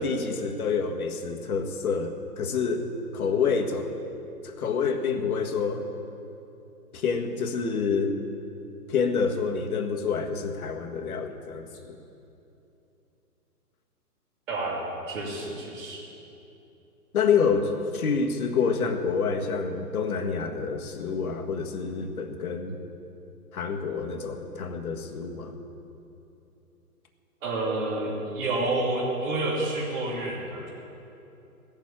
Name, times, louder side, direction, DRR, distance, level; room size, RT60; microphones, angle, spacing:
voice 1, 0.0-2.8 3.1-3.9 4.4-5.9 6.9-8.2 8.9-12.0 17.1-22.8 23.5-25.5, left 5 dB, 65° left, 3 dB, 1.7 m, -27 dB
voice 2, 14.5-16.0 27.4-30.6, right 2 dB, 55° right, -8 dB, 3.1 m, -29 dB
15.5 x 7.3 x 8.8 m, 2.9 s
hypercardioid pair, 150°, 47 cm